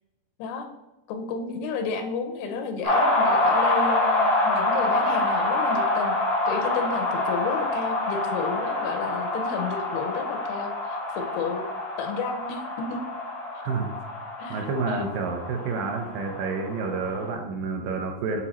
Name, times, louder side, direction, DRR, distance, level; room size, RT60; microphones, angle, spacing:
voice 1, 1.1-6.2 6.5-11.6 12.0-13.0 14.4-15.1, left 5 dB, 90° left, 5 dB, 2.7 m, -32 dB
sound 1, 2.8-17.3, left 2 dB, 40° left, 0.5 m, -26 dB
voice 2, 14.5-18.4, right 4 dB, 80° right, 3 dB, 2.1 m, -29 dB
8.1 x 2.8 x 4.1 m, 0.99 s
omnidirectional pair, 4.4 m